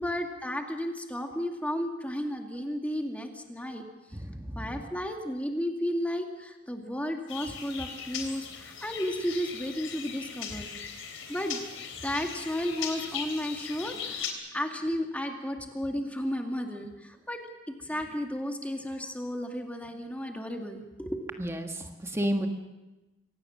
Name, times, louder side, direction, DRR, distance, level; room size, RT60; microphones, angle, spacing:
voice 1, 0.0-3.9 4.6-10.7 11.3-11.6 12.0-17.4 17.7-21.3, equal, 5° left, 3 dB, 2.2 m, -33 dB
voice 2, 4.1-4.8 10.5-10.6 21.4-22.5, equal, 15° right, 4 dB, 1.5 m, -32 dB
sound 1, 7.3-14.3, left 7 dB, 85° left, 3.5 m, -39 dB
25.0 x 18.0 x 6.5 m, 1.1 s
head